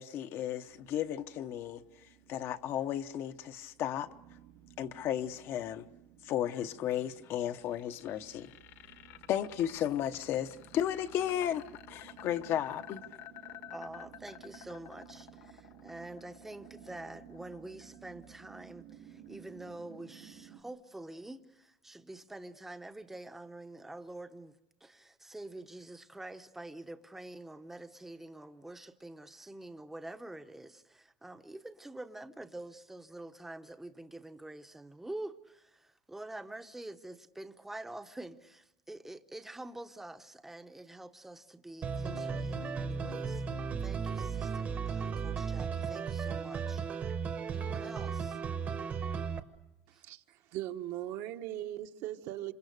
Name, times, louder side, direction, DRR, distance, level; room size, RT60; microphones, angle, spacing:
voice 1, 0.0-1.8 2.3-4.1 4.8-5.9 6.2-8.5 9.3-13.0, left 10 dB, 45° left, 0.9 m, -34 dB
sound 1, 0.7-20.6, right 11 dB, 80° right, 5.8 m, -56 dB
sound 2, 7.5-19.4, left 12 dB, 60° left, 1.5 m, -52 dB
voice 2, 13.7-24.5 24.8-43.4 43.8-47.1 47.5-48.4 49.9-50.0, right 2 dB, 5° right, 0.8 m, -47 dB
sound 3, 41.8-49.4, right 6 dB, 25° right, 1.1 m, -35 dB
voice 3, 49.9-52.5, right 13 dB, 55° right, 1.2 m, -39 dB
27.5 x 27.0 x 6.6 m
cardioid pair, 170°, 6 cm